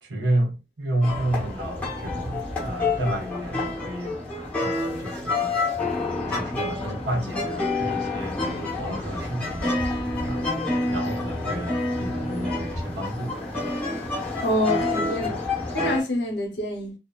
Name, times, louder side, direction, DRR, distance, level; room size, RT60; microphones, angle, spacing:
voice 1, 0.0-4.2 4.6-5.8 6.3-8.5 8.8-9.8 10.2-13.4, right 1 dB, 90° right, 0.8 m, -30 dB
sound 1, 1.0-16.0, left 2 dB, 10° left, 0.8 m, -28 dB
voice 2, 14.4-15.4 15.7-16.9, equal, 80° left, 0.8 m, -26 dB
2.7 x 2.1 x 2.2 m
head